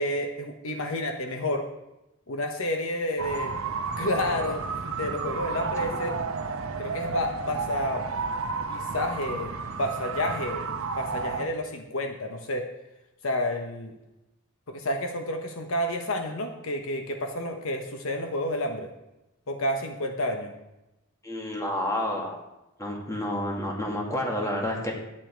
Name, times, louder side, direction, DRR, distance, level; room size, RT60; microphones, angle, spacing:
voice 1, 0.0-1.6 2.3-3.5 4.0-4.6 5.0-6.1 6.8-8.0 8.7-10.7 10.9-12.6 13.2-13.9 14.7-18.9 19.5-20.5, left 1 dB, 70° left, 5 dB, 1.1 m, -30 dB
sound 1, 3.2-11.5, right 4 dB, 70° right, 0.9 m, -32 dB
voice 2, 5.5-6.2 21.2-22.4 22.8-24.9, left 1 dB, 15° left, 0 dB, 2.1 m, -30 dB
11.0 x 8.9 x 4.6 m, 0.94 s
head